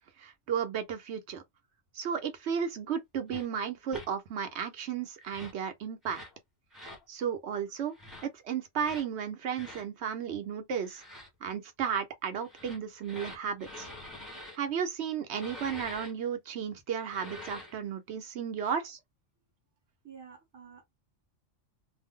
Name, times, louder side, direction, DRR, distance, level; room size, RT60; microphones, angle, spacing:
voice 1, 0.2-1.4 1.9-6.2 7.1-7.9 8.2-13.9 14.6-19.0, right 7 dB, 65° right, 0.9 m, -34 dB
sound 1, 3.3-3.5 3.9-4.1 5.2-5.6 6.0-6.4 6.7-7.0 7.9-8.3 8.8-9.1 9.5-9.8 10.8-11.3 12.4-14.6 15.3-16.1 17.0-17.8, left 1 dB, ahead, 0.9 m, -46 dB
voice 2, 20.0-20.8, right 7 dB, 20° right, 0.6 m, -51 dB
2.6 x 2.0 x 3.6 m
omnidirectional pair, 1.3 m